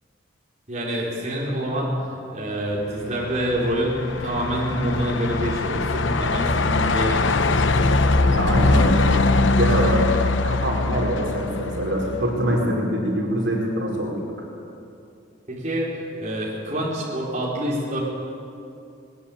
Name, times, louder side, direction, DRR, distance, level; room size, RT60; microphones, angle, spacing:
voice 1, 0.7-1.9 2.3-8.0 15.5-18.0, equal, 40° right, -5 dB, 4.7 m, -27 dB
Truck, 3.0-12.4, left 3 dB, 70° left, 0.9 m, -22 dB
voice 2, 8.3-9.1 9.6-14.2, equal, 70° right, -2 dB, 4.9 m, -24 dB
20.5 x 20.0 x 8.8 m, 2.6 s
head